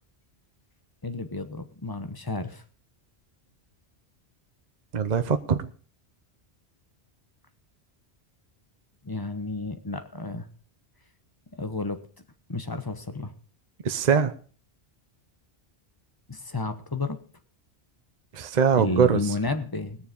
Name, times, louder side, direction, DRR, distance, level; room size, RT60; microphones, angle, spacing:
voice 1, 1.0-2.6 9.0-10.5 11.6-12.0 12.5-13.3 16.3-17.2 18.7-20.1, left 2 dB, 20° left, 8 dB, 1.1 m, -31 dB
voice 2, 4.9-5.7 13.8-14.3 18.3-19.2, right 6 dB, 45° right, 9 dB, 0.8 m, -22 dB
20.0 x 7.2 x 5.2 m, 0.40 s
omnidirectional pair, 1.1 m